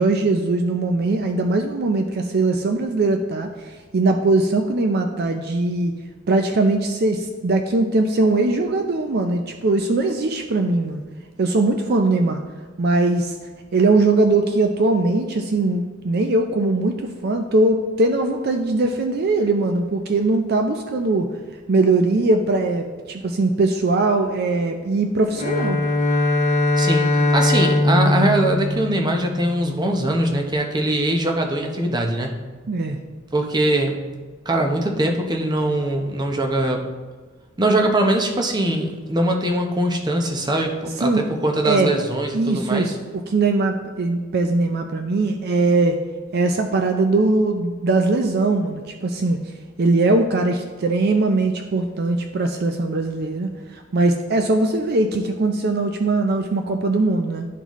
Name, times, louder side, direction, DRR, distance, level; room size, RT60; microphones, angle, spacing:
voice 1, 0.0-5.9 6.3-11.0 11.4-12.4 12.8-13.4 13.7-21.3 21.7-25.8 32.7-33.0 41.0-41.3 41.6-41.9 42.3-46.0 46.3-49.4 49.8-57.5, right 2 dB, 50° right, 5 dB, 0.4 m, -20 dB
Bowed string instrument, 25.3-29.7, left 2 dB, 40° left, 0.8 m, -20 dB
voice 2, 26.8-32.3 33.3-33.9 34.5-36.9 37.6-42.9, right 1 dB, 20° right, 2 dB, 0.7 m, -22 dB
11.5 x 4.0 x 3.0 m, 1.4 s
head